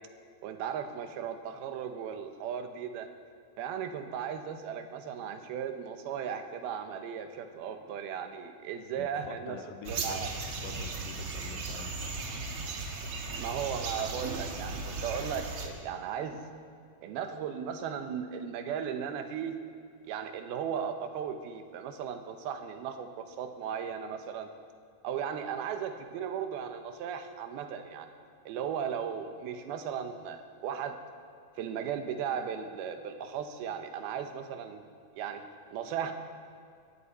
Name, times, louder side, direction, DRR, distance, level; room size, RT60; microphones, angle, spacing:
voice 1, 0.4-3.1 3.6-9.6 9.9-10.3 13.4-16.5 17.0-19.6 20.0-24.5 25.0-28.1 28.5-31.0 31.6-34.9 35.2-35.4 35.7-36.1, right 8 dB, 85° right, 7 dB, 2.9 m, -36 dB
voice 2, 8.9-10.3 10.6-12.0, left 6 dB, 75° left, 6 dB, 2.4 m, -46 dB
sound 1, 9.8-15.7, right 3 dB, 60° right, 1.7 m, -36 dB
19.5 x 15.0 x 4.2 m, 2.4 s
omnidirectional pair, 4.3 m